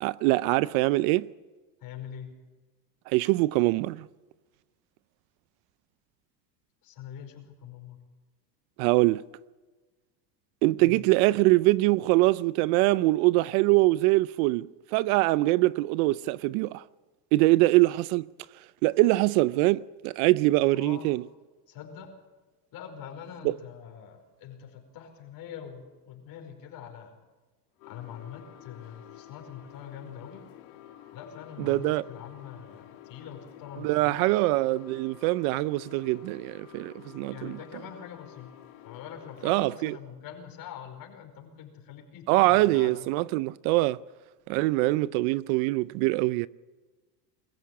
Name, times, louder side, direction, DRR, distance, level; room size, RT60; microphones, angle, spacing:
voice 1, 0.0-1.3 3.1-4.1 8.8-9.2 10.6-16.8 17.3-18.3 18.8-21.2 23.4-23.6 31.6-32.0 33.8-37.6 39.4-40.0 42.3-44.0 44.5-46.5, right 20 dB, 60° right, 0.6 m, -23 dB
voice 2, 1.8-2.3 6.8-8.0 10.8-11.0 20.7-21.1 21.7-22.1 22.7-27.2 27.9-30.4 31.1-34.3 37.3-38.5 38.8-43.0, left 8 dB, 45° left, 5.0 m, -44 dB
sound 1, 27.8-39.7, left 12 dB, 75° left, 2.0 m, -50 dB
22.0 x 14.5 x 8.4 m
supercardioid pair, 130°, 48 cm